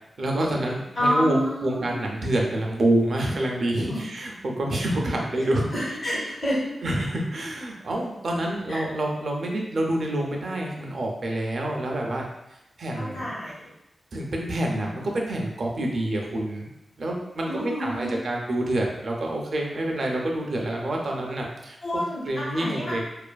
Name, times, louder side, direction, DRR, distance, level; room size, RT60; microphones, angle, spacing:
voice 1, 0.2-6.0 6.8-12.2 12.8-13.3 14.1-16.7 17.0-21.8 22.3-23.0, right 1 dB, 60° right, 0 dB, 0.4 m, -27 dB
voice 2, 0.9-2.0 3.9-4.0 5.4-5.5 5.7-6.6 8.7-8.8 12.9-13.7 14.7-15.0 17.5-18.2 21.8-23.0, equal, 45° left, -8 dB, 0.9 m, -29 dB
2.5 x 2.4 x 2.2 m, 0.87 s
wide cardioid pair, 130°, 0 cm